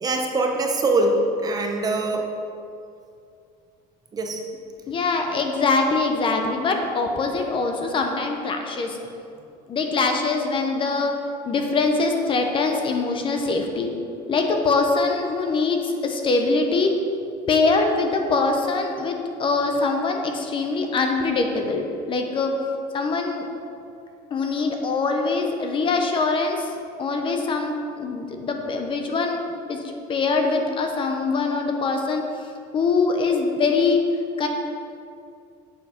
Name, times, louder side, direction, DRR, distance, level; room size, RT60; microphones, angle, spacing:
voice 1, 0.0-2.3 4.1-4.4, right 2 dB, 20° right, 2 dB, 0.7 m, -23 dB
voice 2, 4.9-9.0 9.7-11.2 11.4-13.9 14.3-17.0 17.5-22.6 22.9-23.4 24.3-26.7 27.0-32.2 32.7-34.0 34.4-34.5, left 3 dB, 30° left, 4 dB, 0.8 m, -23 dB
8.0 x 7.0 x 5.1 m, 2.5 s
cardioid pair, 160°, 18 cm